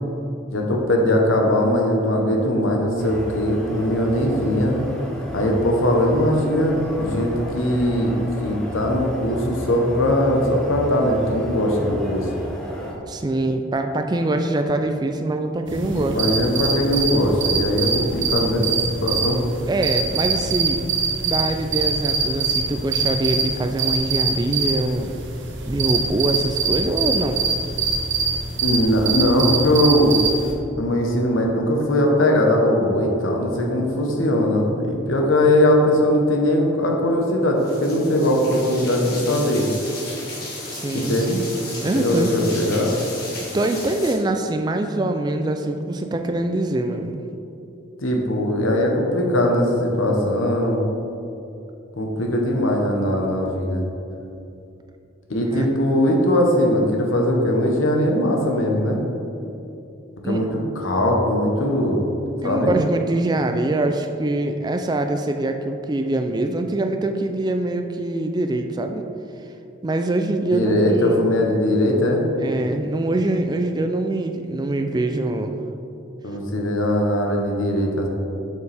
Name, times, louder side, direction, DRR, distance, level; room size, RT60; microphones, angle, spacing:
voice 1, 0.5-4.8 5.3-8.1 8.4-12.2 15.9-19.4 28.6-30.2 30.8-39.7 40.9-41.4 41.9-43.0 48.0-50.9 52.0-53.8 55.3-59.0 60.2-60.5 60.7-62.0 62.4-62.8 70.5-72.2 76.2-78.1, left 1 dB, 90° left, 1 dB, 1.0 m, -20 dB
sound 1, 3.0-12.9, equal, 5° left, 0.8 m, -33 dB
voice 2, 13.1-16.2 19.7-20.8 21.2-25.2 25.6-27.4 40.7-41.5 41.8-42.3 43.5-47.2 55.5-55.7 60.2-60.4 62.4-69.0 69.8-71.2 72.4-75.5, right 2 dB, 20° right, 6 dB, 0.3 m, -24 dB
sound 2, 15.7-30.5, right 5 dB, 65° right, 0.9 m, -24 dB
sound 3, 37.6-44.1, left 2 dB, 50° left, 1.5 m, -35 dB
6.8 x 6.6 x 3.4 m, 2.7 s
head